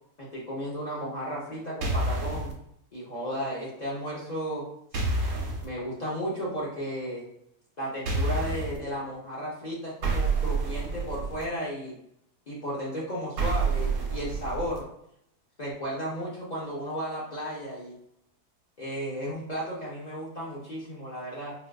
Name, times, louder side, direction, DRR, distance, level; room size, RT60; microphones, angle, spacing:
voice 1, 0.2-2.5 2.9-4.7 4.9-5.1 5.6-7.2 7.8-12.0 12.5-14.9 15.6-18.0 18.8-21.5, equal, 45° left, -6 dB, 0.5 m, -34 dB
sound 1, 1.8-2.5 4.9-5.6 8.0-8.8 10.0-11.4 13.4-14.8, right 3 dB, 70° right, 1.2 m, -28 dB
4.3 x 2.5 x 2.3 m, 0.75 s
omnidirectional pair, 1.7 m